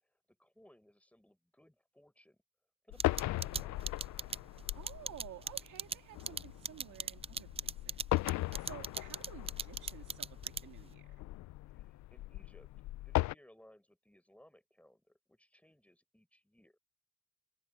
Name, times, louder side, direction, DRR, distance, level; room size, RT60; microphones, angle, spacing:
voice 1, 0.0-2.4 2.8-4.0 11.7-12.7 12.9-16.8, left 1 dB, 5° left, 7.7 m, -64 dB
sound 1, 2.9-13.3, left 17 dB, 70° left, 0.5 m, -38 dB
sound 2, 3.0-10.9, right 5 dB, 20° right, 0.4 m, -38 dB
voice 2, 4.7-8.0 8.4-11.2, right 12 dB, 80° right, 2.3 m, -53 dB
open air
cardioid pair, 90°, 30 cm